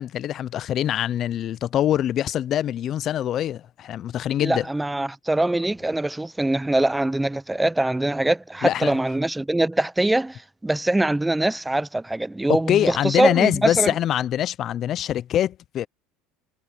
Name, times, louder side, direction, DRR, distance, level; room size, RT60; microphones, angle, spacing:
voice 1, 0.0-4.6 8.6-9.0 12.7-15.9, left 11 dB, 45° left, 0.5 m, -24 dB
voice 2, 4.4-13.9, right 1 dB, 5° right, 0.5 m, -23 dB
supercardioid pair, 125°, 0 cm